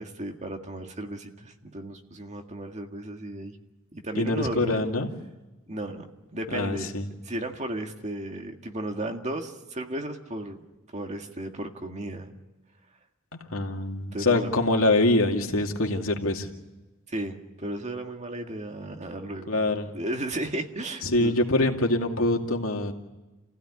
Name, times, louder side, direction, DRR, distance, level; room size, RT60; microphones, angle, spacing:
voice 1, 0.0-3.6 3.9-4.8 5.7-6.9 7.2-10.6 10.9-12.3 14.1-14.5 17.1-19.6 19.9-21.4, right 1 dB, 35° right, 4 dB, 1.9 m, -34 dB
voice 2, 4.1-5.1 6.5-7.1 13.5-16.5 19.5-19.9 21.0-22.9, left 2 dB, 80° left, 3 dB, 2.5 m, -24 dB
29.5 x 16.0 x 9.8 m, 1.1 s
head